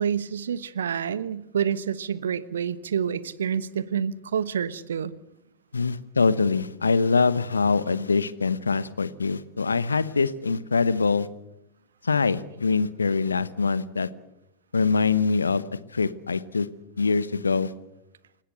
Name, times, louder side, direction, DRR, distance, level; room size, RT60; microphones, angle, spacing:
voice 1, 0.0-5.1, right 8 dB, 65° right, 18 dB, 1.1 m, -28 dB
voice 2, 5.7-11.3 12.0-14.1 14.7-15.6 15.9-16.7 17.0-17.7, left 4 dB, 75° left, 17 dB, 1.1 m, -24 dB
28.5 x 16.5 x 7.9 m, 0.88 s
figure-of-eight pair, 90°, 0 cm